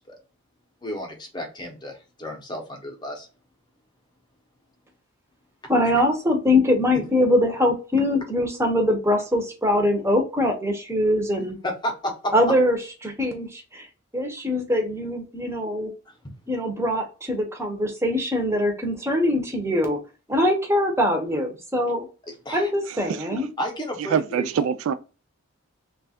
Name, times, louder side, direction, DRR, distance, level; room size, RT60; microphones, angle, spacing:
voice 1, 0.8-3.3 11.6-12.3 16.2-16.3 20.4-20.5 22.2-22.7 23.6-24.5, equal, 20° left, 0.8 m, -32 dB
voice 2, 5.7-11.6 12.3-12.8 13.0-13.9 14.1-15.9 16.5-20.0 20.3-22.1 22.5-23.5, left 1 dB, 10° right, 0.7 m, -22 dB
voice 3, 22.9-23.4 24.1-24.9, right 7 dB, 70° right, 0.3 m, -25 dB
3.2 x 2.3 x 4.1 m
head